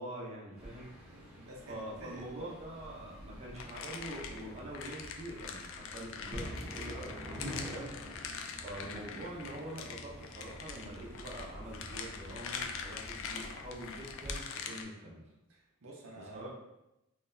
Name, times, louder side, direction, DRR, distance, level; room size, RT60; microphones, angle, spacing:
voice 1, 0.0-0.9 1.3-7.9 8.2-15.2 16.3-16.5, right 1 dB, 30° right, -4 dB, 0.7 m, -45 dB
sound 1, 0.6-14.3, equal, 5° right, 0.9 m, -48 dB
voice 2, 0.7-2.5 15.5-16.5, right 1 dB, 70° right, -2 dB, 0.7 m, -51 dB
sound 2, 3.5-14.8, left 6 dB, 60° left, 0.4 m, -44 dB
sound 3, 6.3-9.1, equal, 30° left, 1.3 m, -47 dB
3.8 x 3.1 x 2.6 m, 0.91 s
head